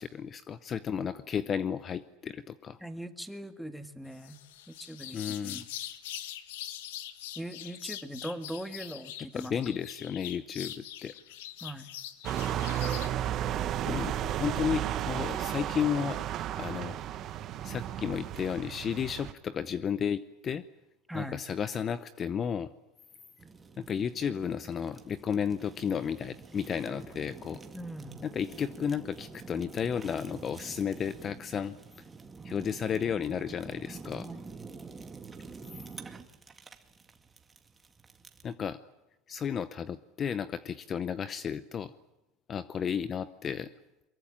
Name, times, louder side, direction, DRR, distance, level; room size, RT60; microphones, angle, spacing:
voice 1, 0.0-2.8 5.1-5.6 9.3-11.2 13.8-16.2 16.6-17.0 17.6-20.6 21.1-22.7 23.8-27.6 28.2-31.8 32.4-34.3 35.7-35.8 38.4-38.8 39.3-41.9 42.5-43.7, left 7 dB, 30° left, 14 dB, 0.8 m, -33 dB
voice 2, 2.8-4.4 4.7-5.2 5.4-5.7 7.4-9.5 11.6-11.9 21.1-21.4 27.7-28.2 34.1-34.5, right 1 dB, ahead, 8 dB, 1.9 m, -40 dB
sound 1, 4.2-13.1, left 12 dB, 85° left, 1.7 m, -43 dB
sound 2, 12.2-19.3, right 11 dB, 45° right, 1.6 m, -33 dB
Fire, 23.4-38.5, right 4 dB, 15° right, 2.1 m, -48 dB
23.5 x 22.5 x 8.8 m, 0.98 s
supercardioid pair, 125°, 0 cm